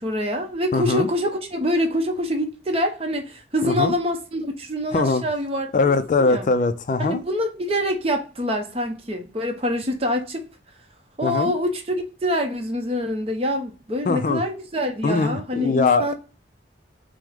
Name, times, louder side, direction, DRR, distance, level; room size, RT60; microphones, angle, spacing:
voice 1, 0.0-6.5 7.0-10.4 11.2-16.1, equal, 30° right, 0.7 m, -25 dB
voice 2, 0.7-1.1 3.6-3.9 4.9-5.2 5.7-7.2 11.2-11.5 14.1-14.4 15.0-16.1, left 3 dB, 45° left, 0.3 m, -21 dB
6.0 x 2.1 x 3.5 m
head